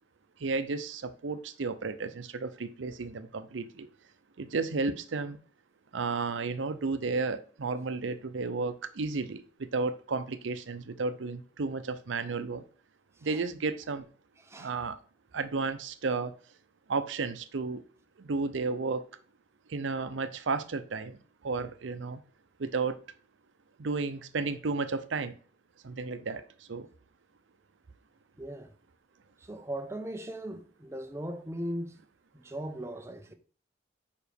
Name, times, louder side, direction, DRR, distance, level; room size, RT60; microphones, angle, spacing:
voice 1, 0.4-3.9 4.4-5.4 5.9-12.6 13.2-14.1 14.6-15.0 15.3-16.3 16.9-17.8 18.2-19.0 19.7-21.2 21.4-22.2 22.6-23.0 23.8-25.4 25.8-26.9, right 4 dB, 90° right, 0.6 m, -33 dB
voice 2, 28.4-28.7 29.4-32.0 32.3-33.3, right 1 dB, 15° right, 0.6 m, -38 dB
5.2 x 4.8 x 5.1 m
head